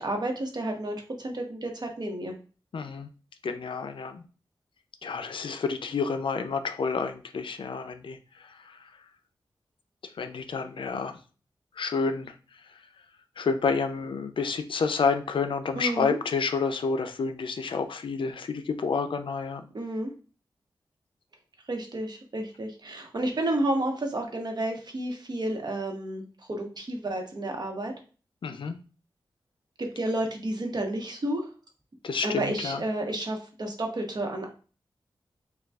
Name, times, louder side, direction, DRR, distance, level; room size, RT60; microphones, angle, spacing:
voice 1, 0.0-2.3 15.7-16.2 19.7-20.1 21.7-27.9 29.8-31.5 32.2-34.5, right 1 dB, 50° right, 2 dB, 1.0 m, -31 dB
voice 2, 2.7-3.1 3.4-4.2 5.0-8.2 10.2-11.1 11.8-12.3 13.4-19.7 28.4-28.7 32.0-32.8, left 5 dB, 70° left, 8 dB, 0.4 m, -29 dB
6.6 x 2.3 x 2.4 m, 0.37 s
wide cardioid pair, 75°, 9 cm